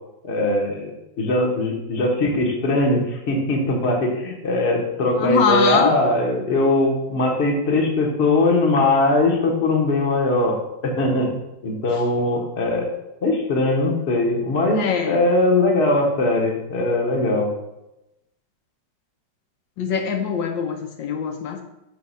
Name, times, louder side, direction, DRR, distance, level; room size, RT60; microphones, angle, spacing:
voice 1, 0.2-10.6 10.8-12.9 13.2-17.5, left 2 dB, 40° left, 0 dB, 1.4 m, -20 dB
voice 2, 5.2-5.9 14.8-15.2 19.8-21.6, left 6 dB, 80° left, 3 dB, 1.5 m, -22 dB
6.6 x 4.1 x 5.5 m, 0.91 s
omnidirectional pair, 2.1 m